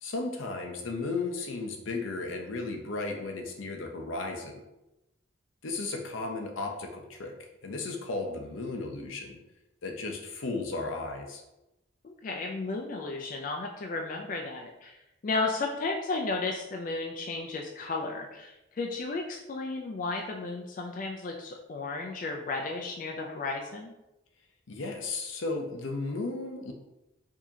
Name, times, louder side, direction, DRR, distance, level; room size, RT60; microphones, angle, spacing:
voice 1, 0.0-4.6 5.6-7.3 7.6-9.4 9.8-11.4 24.7-26.7, left 3 dB, 80° left, 3 dB, 0.7 m, -34 dB
voice 2, 12.0-15.0 15.2-23.9, left 3 dB, 40° left, 1 dB, 0.3 m, -34 dB
4.8 x 2.8 x 2.7 m, 0.93 s
head